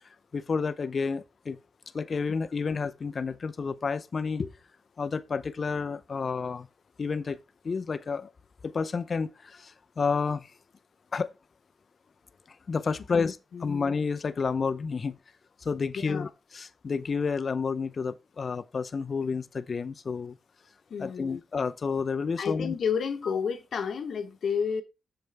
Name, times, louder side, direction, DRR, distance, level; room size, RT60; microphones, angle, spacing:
voice 1, 0.3-1.6 1.9-4.5 5.0-6.7 7.0-7.4 7.6-8.3 8.6-10.5 11.1-11.3 12.5-15.2 15.6-20.4 21.0-22.7, left 5 dB, 50° left, 0.6 m, -30 dB
voice 2, 13.1-13.8 15.9-16.3 20.9-21.4 22.4-24.8, left 6 dB, 75° left, 1.1 m, -31 dB
7.6 x 6.9 x 3.4 m
cardioid pair, 70°, 0 cm